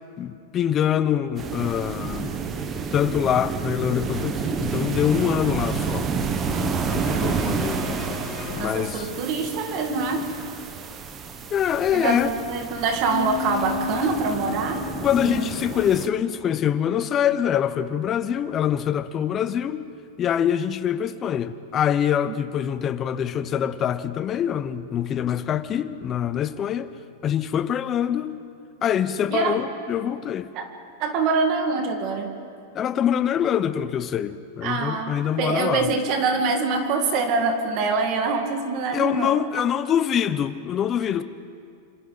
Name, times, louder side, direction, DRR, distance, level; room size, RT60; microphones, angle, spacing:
voice 1, 0.2-2.3 2.9-6.1 6.5-8.0 8.6-9.1 11.5-12.3 15.0-19.9 20.2-26.9 27.2-28.4 28.8-30.5 32.7-35.9 38.9-41.2, left 9 dB, 20° left, 0.6 m, -24 dB
sound 1, 1.4-16.1, right 5 dB, 20° right, 0.9 m, -30 dB
sound 2, 6.7-10.2, left 1 dB, 5° left, 3.0 m, -37 dB
voice 2, 8.6-10.3 11.9-14.9 15.2-15.5 29.3-29.6 30.5-30.7 31.0-32.3 34.6-39.5, right 4 dB, 35° right, 1.9 m, -25 dB
sound 3, 13.1-16.7, left 10 dB, 65° left, 4.3 m, -33 dB
26.5 x 25.5 x 4.0 m
supercardioid pair, 165°, 0 cm